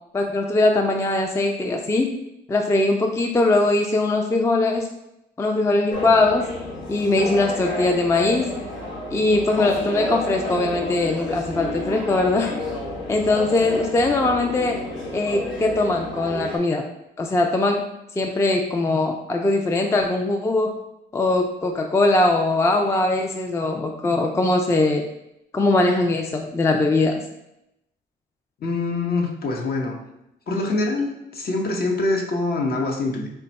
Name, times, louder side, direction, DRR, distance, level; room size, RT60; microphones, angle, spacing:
voice 1, 0.1-2.1 2.5-4.9 5.4-6.4 6.9-8.5 9.1-12.5 13.1-14.8 15.1-16.8 17.2-17.9 18.2-20.7 21.1-25.1 25.5-27.2, left 2 dB, 15° left, 3 dB, 0.3 m, -21 dB
sound 1, 5.9-16.6, left 1 dB, 80° left, 0.9 m, -31 dB
voice 2, 28.6-30.0 30.5-33.3, left 2 dB, 50° left, 1 dB, 0.7 m, -24 dB
3.4 x 2.2 x 3.9 m, 0.85 s
cardioid pair, 90°, 20 cm